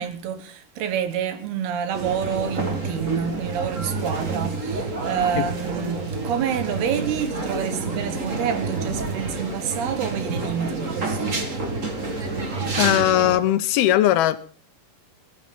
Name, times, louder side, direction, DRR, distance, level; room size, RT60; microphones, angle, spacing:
voice 1, 0.0-11.4, right 8 dB, 80° right, 3.3 m, -28 dB
sound 1, 1.9-13.4, right 3 dB, 65° right, 0.7 m, -28 dB
voice 2, 12.8-14.4, left 13 dB, 80° left, 2.6 m, -19 dB
21.0 x 12.5 x 3.8 m
omnidirectional pair, 4.5 m